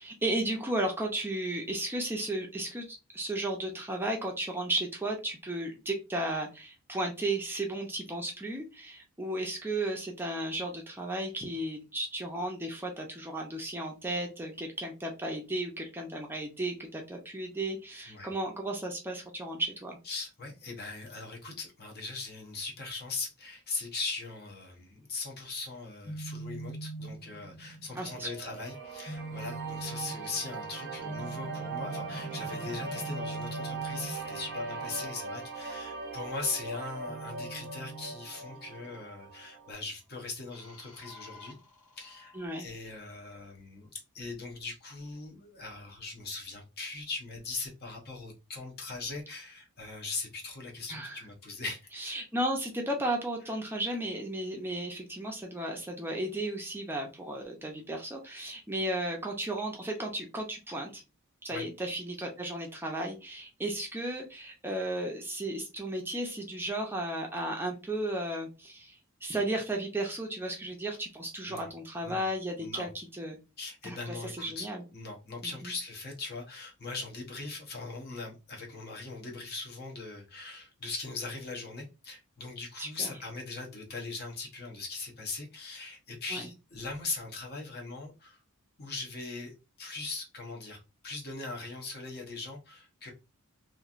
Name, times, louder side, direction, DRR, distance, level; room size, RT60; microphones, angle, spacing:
voice 1, 0.0-20.0 28.0-28.5 42.3-42.7 50.9-51.2 52.0-61.0 61.4-73.4 73.8-74.8 75.4-75.7 82.8-83.1 86.3-86.5, right 1 dB, 10° right, 1 dB, 0.5 m, -34 dB
voice 2, 20.1-41.6 42.0-51.9 61.5-61.6 71.5-71.7 72.0-72.2 72.6-72.9 73.6-74.7 74.9-88.4 88.8-93.1, left 3 dB, 50° left, 0 dB, 0.9 m, -40 dB
sound 1, 26.1-35.1 37.1-39.0 40.5-42.4, right 2 dB, 80° left, 1.5 m, -43 dB
sound 2, 28.7-39.7, right 4 dB, 55° right, 0.6 m, -40 dB
3.1 x 2.6 x 2.4 m, 0.28 s
head